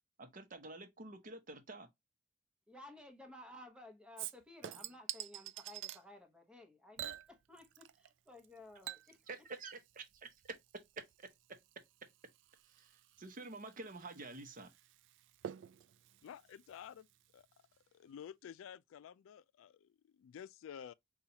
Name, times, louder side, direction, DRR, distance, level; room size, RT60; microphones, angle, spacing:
voice 1, 0.2-1.9 9.3-10.3 11.2-11.3 12.7-14.7, right 3 dB, 45° right, 0.8 m, -49 dB
voice 2, 2.7-9.2, left 1 dB, 5° right, 0.9 m, -56 dB
Chink clink / Liquid, 4.2-6.0 7.0-8.1 8.4-17.4 17.8-17.9, right 11 dB, 65° right, 0.3 m, -49 dB
voice 3, 16.2-17.1 17.3-17.5 17.9-20.9, left 8 dB, 85° left, 0.3 m, -51 dB
5.5 x 2.4 x 2.8 m
head